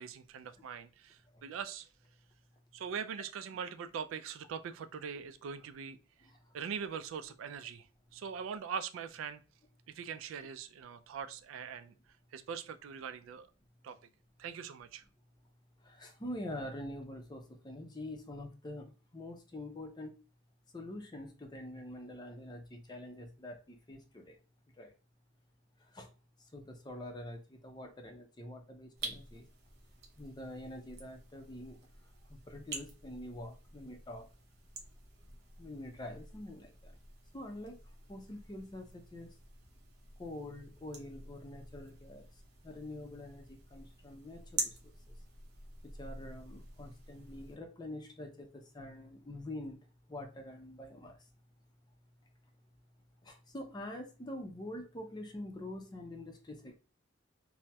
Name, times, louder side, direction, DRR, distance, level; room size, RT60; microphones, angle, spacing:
voice 1, 0.0-1.9 2.7-6.0 6.5-7.9 8.1-9.4 9.9-11.9 12.3-13.5 13.8-14.0 14.4-15.0, right 7 dB, 85° right, 11 dB, 0.3 m, -42 dB
voice 2, 15.8-20.1 20.7-24.4 24.8-24.9 25.9-26.1 26.5-29.4 30.2-31.8 32.3-34.3 35.6-37.0 37.3-37.8 38.1-39.3 40.2-42.3 42.6-44.7 46.0-49.8 50.1-51.2 53.2-56.8, left 1 dB, 20° left, 4 dB, 0.5 m, -45 dB
sound 1, 29.0-47.6, right 4 dB, 55° right, 0.7 m, -48 dB
4.1 x 2.0 x 2.2 m, 0.34 s
head